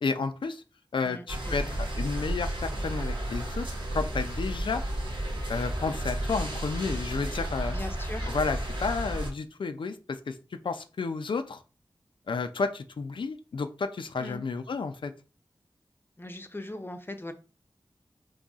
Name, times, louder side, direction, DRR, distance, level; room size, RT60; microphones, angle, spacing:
voice 1, 0.0-0.6 0.9-3.7 3.9-4.8 5.5-7.8 8.3-10.4 10.6-11.6 12.3-15.1, left 4 dB, 80° left, 9 dB, 0.4 m, -31 dB
voice 2, 1.0-1.8 7.6-8.3 14.2-14.4 16.2-17.3, left 1 dB, 25° left, 7 dB, 0.6 m, -40 dB
sound 1, 1.3-9.3, right 1 dB, 85° right, 0.7 m, -32 dB
3.9 x 2.7 x 2.4 m, 0.34 s
wide cardioid pair, 50°, 8 cm